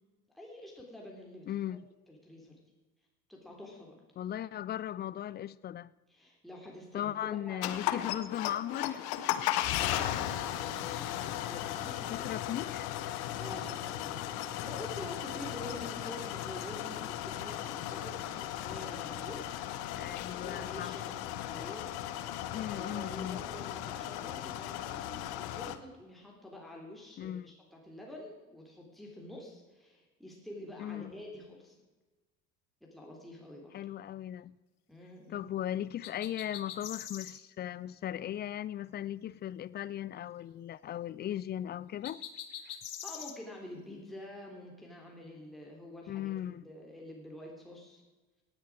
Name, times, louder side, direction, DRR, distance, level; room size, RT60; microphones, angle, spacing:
voice 1, 0.3-1.6 2.1-2.6 3.3-4.0 6.1-8.1 9.7-12.3 13.1-14.3 14.6-31.7 32.8-33.8 34.9-35.5 42.6-42.8 43.0-48.0, left 1 dB, ahead, 3.2 m, -48 dB
voice 2, 1.5-1.8 4.2-5.9 6.9-9.1 12.1-12.9 19.9-21.0 22.5-23.4 27.2-27.5 30.8-31.1 33.7-34.6 35.3-42.2 46.1-46.6, left 11 dB, 25° left, 0.3 m, -37 dB
sound 1, 7.6-25.8, left 12 dB, 55° left, 1.0 m, -36 dB
sound 2, 36.0-37.4 42.0-43.4, left 9 dB, 80° left, 0.9 m, -43 dB
18.0 x 9.7 x 4.8 m
figure-of-eight pair, 55°, 44 cm